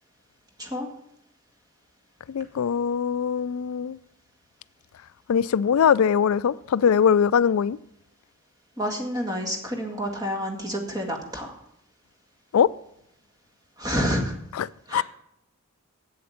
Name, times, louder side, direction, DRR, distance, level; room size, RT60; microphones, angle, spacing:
voice 1, 0.6-0.9 8.8-11.5 13.8-14.3 14.9-15.0, equal, 20° right, 1.9 m, -28 dB
voice 2, 2.3-4.0 5.3-7.8 12.5-12.7 14.5-15.0, left 7 dB, 80° left, 0.4 m, -21 dB
7.9 x 7.7 x 8.7 m
head